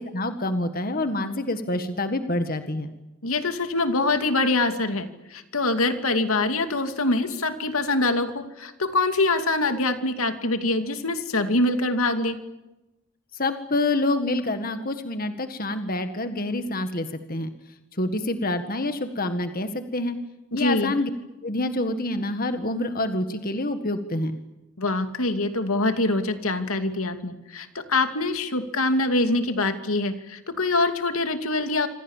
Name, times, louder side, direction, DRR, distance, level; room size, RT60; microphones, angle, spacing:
voice 1, 0.0-2.9 13.3-17.5 18.0-20.2 20.5-21.1 21.4-24.4, left 2 dB, 40° left, 8 dB, 1.8 m, -27 dB
voice 2, 3.2-12.4 20.5-20.9 24.8-31.9, left 2 dB, 80° left, 8 dB, 2.7 m, -24 dB
27.0 x 26.5 x 7.4 m, 1.0 s
head